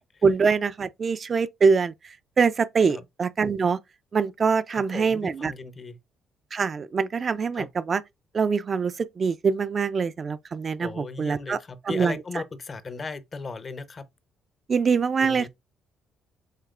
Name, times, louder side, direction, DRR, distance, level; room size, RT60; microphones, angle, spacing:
voice 1, 0.2-3.8 4.1-5.5 6.5-8.0 8.3-11.6 11.9-12.2 14.7-15.5, right 5 dB, 35° right, 0.4 m, -24 dB
voice 2, 4.7-6.0 7.5-7.7 10.8-14.0 15.2-15.5, left 4 dB, 30° left, 0.6 m, -37 dB
7.4 x 2.9 x 2.4 m
cardioid pair, 110°, 0 cm